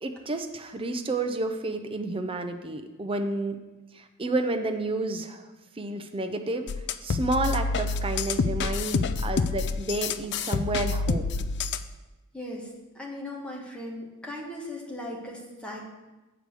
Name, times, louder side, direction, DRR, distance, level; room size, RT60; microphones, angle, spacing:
voice 1, 0.0-3.6 3.9-5.5 5.8-6.7 7.0-11.2, right 2 dB, 25° right, 6 dB, 0.6 m, -30 dB
sound 1, 6.7-11.9, left 4 dB, 50° left, 0.4 m, -28 dB
voice 2, 12.3-15.8, left 1 dB, 5° left, -2 dB, 1.3 m, -38 dB
7.8 x 4.8 x 6.7 m, 1.1 s
head